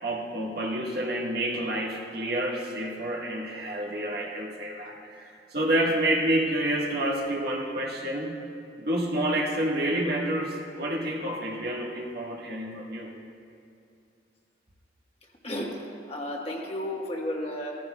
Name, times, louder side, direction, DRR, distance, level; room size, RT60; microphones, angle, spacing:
voice 1, 0.0-8.4 8.8-13.1, right 1 dB, 60° right, -2 dB, 1.4 m, -29 dB
voice 2, 15.4-15.7 16.1-17.7, left 1 dB, 35° left, -1 dB, 1.3 m, -32 dB
16.0 x 14.5 x 2.3 m, 2.5 s
head